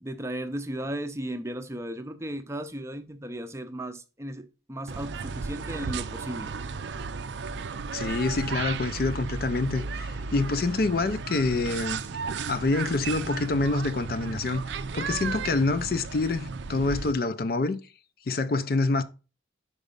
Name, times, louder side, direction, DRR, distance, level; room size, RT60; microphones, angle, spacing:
voice 1, 0.0-6.5, right 1 dB, 15° right, 0.5 m, -35 dB
sound 1, 4.9-17.1, right 5 dB, 70° right, 0.4 m, -34 dB
voice 2, 7.9-12.0 12.5-14.6 14.9-17.8 18.3-19.0, left 3 dB, 50° left, 0.4 m, -26 dB
5.3 x 4.9 x 5.1 m
head